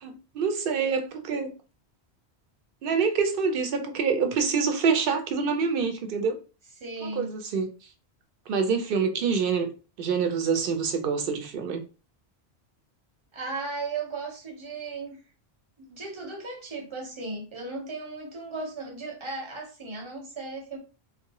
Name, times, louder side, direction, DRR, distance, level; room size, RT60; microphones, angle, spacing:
voice 1, 0.0-1.5 2.8-6.4 7.0-7.7 8.5-9.7 10.0-11.8, right 5 dB, 65° right, 0.7 m, -26 dB
voice 2, 6.8-7.3 13.3-15.2 15.8-20.8, right 3 dB, 30° right, 0.8 m, -36 dB
2.7 x 2.1 x 2.9 m
omnidirectional pair, 1.1 m